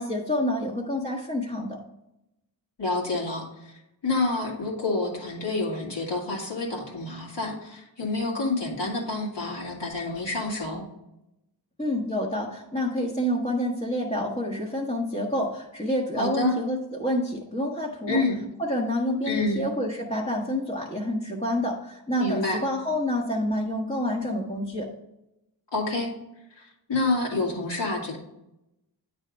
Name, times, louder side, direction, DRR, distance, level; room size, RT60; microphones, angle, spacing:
voice 1, 0.0-1.8 11.8-18.2 18.6-24.9, left 1 dB, 15° left, -5 dB, 1.1 m, -28 dB
voice 2, 2.8-3.7 4.0-10.9 16.2-16.6 18.1-18.4 19.3-19.7 22.2-22.6 25.7-26.1 26.6-28.2, left 2 dB, 70° left, -2 dB, 1.9 m, -28 dB
9.1 x 3.4 x 5.1 m, 0.87 s
wide cardioid pair, 60°, 44 cm